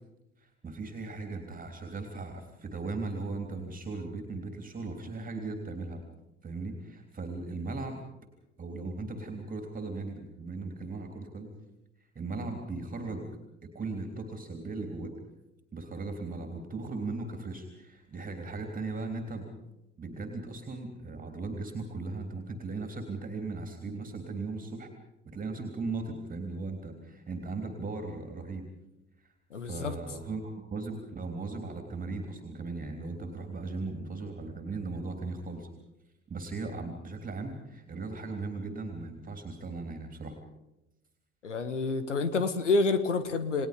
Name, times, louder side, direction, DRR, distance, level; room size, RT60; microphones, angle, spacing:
voice 1, 0.4-6.0 6.4-8.0 8.6-11.5 12.1-13.2 13.7-15.1 15.7-19.5 20.0-24.9 25.2-28.6 29.2-29.3 29.6-35.7 36.3-40.3, right 3 dB, 25° right, 5 dB, 3.4 m, -37 dB
voice 2, 29.5-30.0 41.4-43.7, left 3 dB, 80° left, 12 dB, 1.7 m, -28 dB
29.0 x 19.5 x 5.3 m, 0.95 s
figure-of-eight pair, 60°, 36 cm